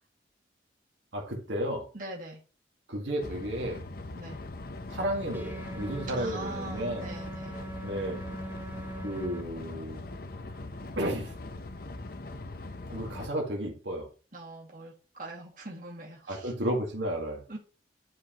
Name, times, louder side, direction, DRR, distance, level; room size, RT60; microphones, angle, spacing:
voice 1, 1.1-1.9 2.9-3.8 4.9-7.1 7.8-8.2 9.0-10.0 11.0-11.3 12.9-14.1 16.3-17.4, right 1 dB, 80° right, 0 dB, 1.9 m, -32 dB
voice 2, 1.9-2.4 4.1-4.4 6.1-7.6 14.3-16.5 17.5-17.6, right 2 dB, 50° right, -2 dB, 2.3 m, -42 dB
sound 1, 3.2-13.3, left 2 dB, 55° left, 0.8 m, -41 dB
sound 2, 5.3-9.4, right 2 dB, 10° right, 0.9 m, -41 dB
11.0 x 4.9 x 3.0 m, 0.36 s
head